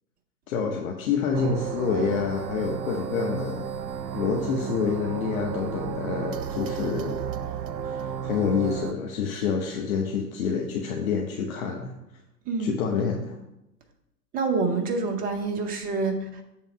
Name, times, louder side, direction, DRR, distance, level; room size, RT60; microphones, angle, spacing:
voice 1, 0.5-3.7 4.1-7.5 7.8-11.9 12.6-13.4, left 6 dB, 55° left, 1 dB, 1.0 m, -28 dB
sound 1, 1.3-8.9, right 8 dB, 90° right, 0.6 m, -33 dB
voice 2, 14.3-16.5, right 4 dB, 15° right, 5 dB, 0.8 m, -27 dB
7.6 x 3.5 x 6.0 m, 0.90 s
figure-of-eight pair, 110°, 50 cm